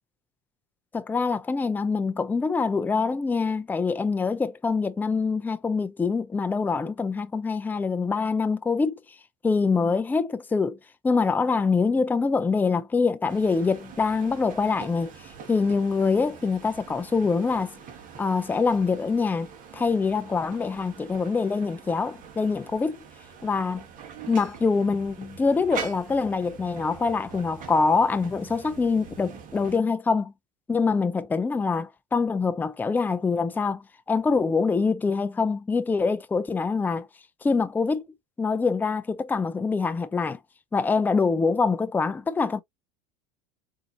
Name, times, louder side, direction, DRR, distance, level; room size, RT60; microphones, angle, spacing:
voice 1, 0.9-9.0 9.4-10.8 11.0-15.1 15.5-17.7 18.2-19.5 19.7-23.0 23.4-23.8 24.3-30.3 30.7-37.1 37.4-38.0 38.4-40.4 40.7-42.6, left 4 dB, 10° left, 0.4 m, -25 dB
sound 1, 13.3-29.8, right 6 dB, 45° right, 1.2 m, -44 dB
4.0 x 2.8 x 2.4 m
supercardioid pair, 100°, 18 cm